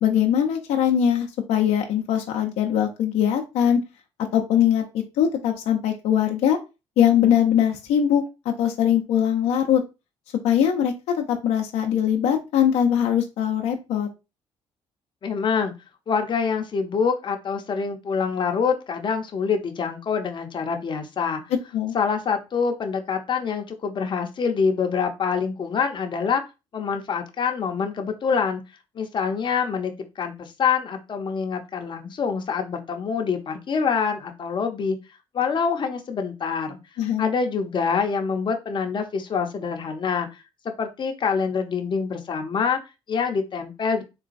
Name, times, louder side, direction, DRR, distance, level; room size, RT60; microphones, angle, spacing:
voice 1, 0.0-3.8 4.3-6.6 7.0-9.8 10.4-14.1 21.7-21.9 37.0-37.3, left 9 dB, 80° left, 3 dB, 0.5 m, -21 dB
voice 2, 15.2-15.7 16.1-21.4 21.9-26.4 26.7-28.6 29.0-35.0 35.3-36.8 37.2-42.8 43.1-44.0, left 6 dB, 45° left, 5 dB, 0.7 m, -25 dB
3.9 x 2.2 x 2.5 m, 0.26 s
supercardioid pair, 75°, 11 cm